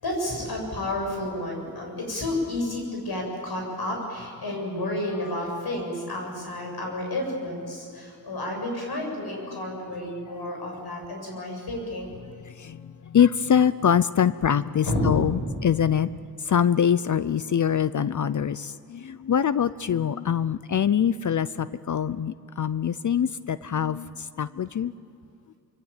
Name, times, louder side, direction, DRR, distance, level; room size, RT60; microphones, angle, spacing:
voice 1, 0.0-12.1 14.8-15.2, left 1 dB, 85° left, 0 dB, 7.7 m, -30 dB
voice 2, 13.1-16.1 16.5-24.1 24.4-24.9, left 8 dB, 55° left, 15 dB, 0.6 m, -24 dB
25.0 x 24.0 x 9.0 m, 2.3 s
wide cardioid pair, 120°, 37 cm